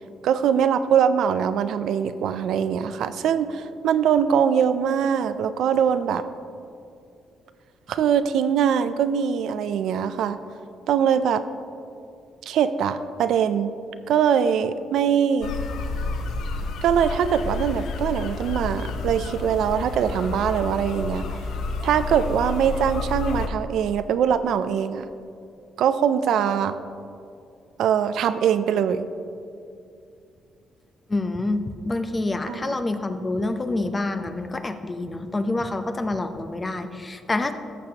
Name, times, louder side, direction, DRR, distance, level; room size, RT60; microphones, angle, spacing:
voice 1, 0.2-6.3 7.9-10.4 10.9-11.4 12.5-13.7 14.1-15.5 16.8-21.3 21.8-25.1 25.8-26.8 27.8-29.1 32.5-32.8, right 8 dB, 75° right, 11 dB, 0.4 m, -22 dB
sound 1, 15.4-23.5, left 3 dB, 75° left, 0.6 m, -30 dB
voice 2, 31.1-37.5, left 2 dB, 25° left, 8 dB, 0.6 m, -27 dB
14.5 x 6.8 x 2.9 m, 2.5 s
cardioid pair, 90°, 0 cm